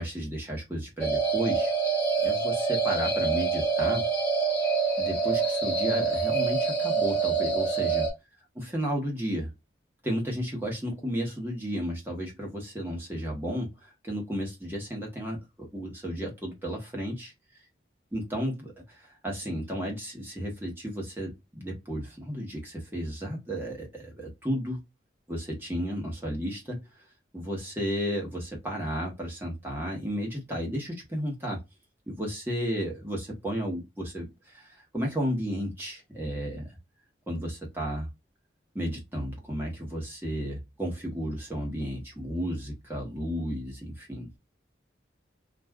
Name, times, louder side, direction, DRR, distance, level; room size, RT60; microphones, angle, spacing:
voice 1, 0.0-1.7 2.2-4.0 5.0-8.1 8.6-9.5 10.0-17.3 18.1-24.8 25.3-26.8 27.3-31.6 32.1-33.2 33.4-36.7 37.3-38.1 38.7-44.3, equal, 10° right, 1.0 m, -33 dB
sound 1, 1.0-8.1, right 5 dB, 10° left, 1.1 m, -26 dB
2.5 x 2.3 x 3.4 m
head